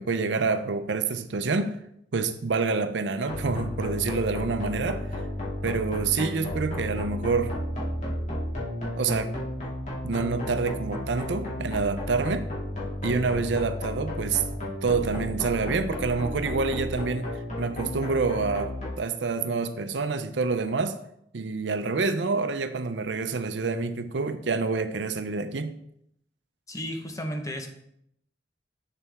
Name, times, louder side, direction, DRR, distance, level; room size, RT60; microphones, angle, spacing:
voice 1, 0.0-1.8 2.1-5.1 5.6-7.5 9.0-9.3 10.0-12.5 13.0-14.4 14.8-21.0 21.3-25.8, right 4 dB, 85° right, 0.6 m, -27 dB
sound 1, 3.3-18.9, left 1 dB, 40° left, 2.4 m, -33 dB
voice 2, 26.7-27.7, equal, 20° left, 0.9 m, -33 dB
6.9 x 6.8 x 3.5 m
head